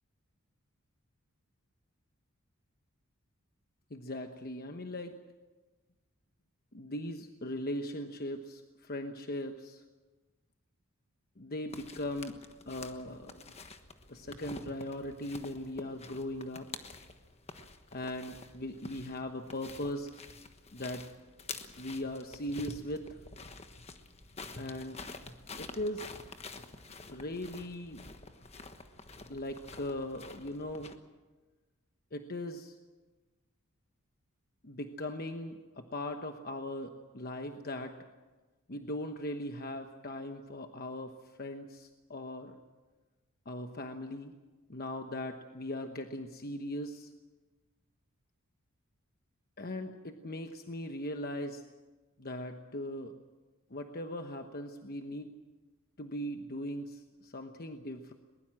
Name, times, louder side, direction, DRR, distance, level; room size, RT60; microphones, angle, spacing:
voice 1, 3.9-5.1 6.7-9.8 11.4-12.4 12.7-13.6 14.1-16.7 17.9-20.1 20.7-21.1 21.8-23.1 24.6-25.0 25.6-26.1 27.1-28.0 29.3-31.0 32.1-32.8 34.6-37.9 38.7-41.1 41.4-42.6 43.4-44.3 44.7-47.1 49.6-51.6 52.2-53.1 53.7-55.3 56.0-58.1, left 1 dB, 45° left, 6 dB, 1.1 m, -39 dB
sound 1, 11.7-31.0, left 3 dB, 30° left, 1.3 m, -48 dB
22.0 x 20.5 x 7.6 m, 1.2 s
head